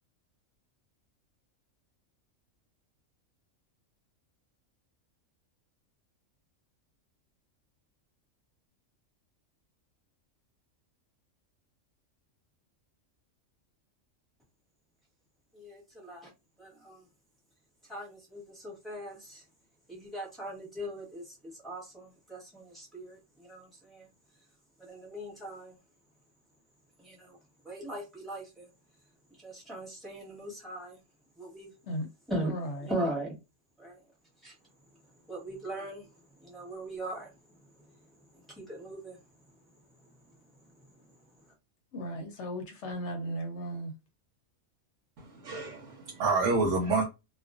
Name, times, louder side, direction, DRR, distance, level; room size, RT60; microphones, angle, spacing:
voice 1, 15.5-16.3 16.6-17.0 17.9-19.4 19.9-24.1 24.8-25.7 27.0-27.4 27.6-28.7 29.4-31.0 31.4-31.7 32.3-32.5 32.9-33.3 33.8-34.0 34.4-34.5 35.3-36.1 36.4-37.3 38.5-39.2, right 1 dB, ahead, 1.0 m, -39 dB
voice 2, 32.5-32.9 41.9-43.9, equal, 70° left, 0.8 m, -36 dB
voice 3, 45.2-47.0, right 3 dB, 80° right, 1.0 m, -28 dB
2.4 x 2.2 x 2.4 m
omnidirectional pair, 1.3 m